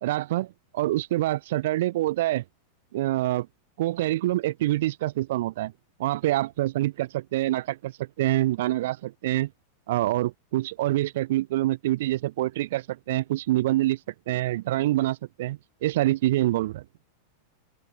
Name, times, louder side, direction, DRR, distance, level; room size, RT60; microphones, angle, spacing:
voice 1, 0.0-2.4 2.9-3.5 3.8-5.7 6.0-9.5 9.9-14.0 14.3-16.8, right 16 dB, 55° right, 3.5 m, -26 dB
open air
figure-of-eight pair, 90°, 0 cm